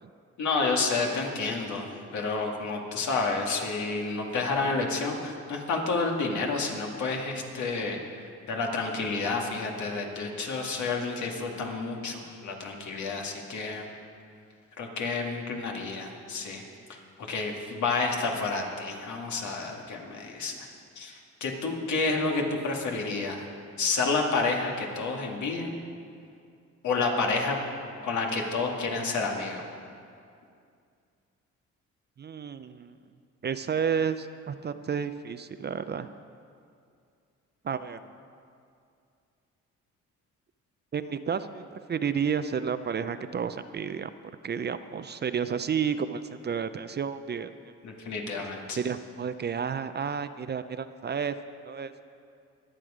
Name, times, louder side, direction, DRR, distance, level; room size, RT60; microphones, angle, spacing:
voice 1, 0.4-8.0 8.5-13.9 14.8-16.6 16.9-20.7 21.0-23.5 23.8-25.8 26.8-27.6 28.0-29.7 47.8-48.8, left 3 dB, 70° left, 1 dB, 2.1 m, -30 dB
voice 2, 32.2-32.9 33.4-36.1 37.6-38.0 40.9-44.1 44.4-47.5 48.4-48.5 48.7-51.4 51.6-51.9, right 7 dB, 35° right, 11 dB, 0.5 m, -31 dB
22.0 x 7.7 x 5.0 m, 2.4 s
cardioid pair, 90°, 30 cm